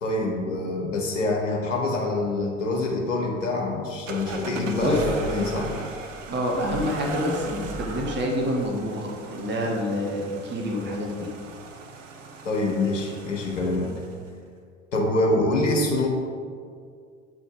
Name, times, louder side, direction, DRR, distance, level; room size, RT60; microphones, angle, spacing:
voice 1, 0.0-5.7 12.4-13.9 14.9-16.1, left 2 dB, 75° left, 0 dB, 1.0 m, -25 dB
sound 1, 4.1-14.3, right 3 dB, 75° right, 0.8 m, -38 dB
voice 2, 6.3-11.3, equal, 30° right, -1 dB, 1.3 m, -27 dB
7.7 x 4.3 x 4.8 m, 2.1 s
figure-of-eight pair, 65°, 38 cm